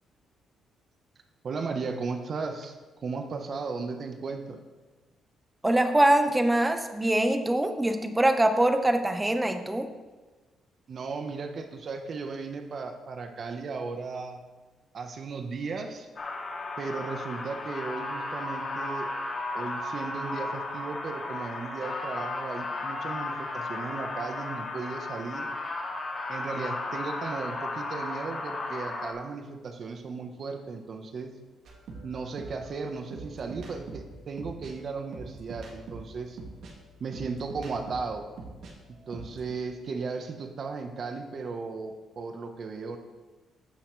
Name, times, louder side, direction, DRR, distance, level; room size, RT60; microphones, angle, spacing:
voice 1, 1.4-4.6 10.9-14.4 14.9-16.1 16.8-19.1 19.5-25.5 26.3-31.3 32.0-36.4 37.0-38.3 39.1-43.0, right 4 dB, 50° right, 5 dB, 1.0 m, -36 dB
voice 2, 5.6-9.9, right 1 dB, 15° right, 7 dB, 0.9 m, -23 dB
sound 1, 16.2-29.1, left 2 dB, 40° left, 2.0 m, -34 dB
sound 2, 31.6-38.7 39.0-39.5, right 3 dB, 70° right, 1.9 m, -43 dB
15.0 x 5.8 x 3.2 m, 1.3 s
cardioid pair, 90°, 0 cm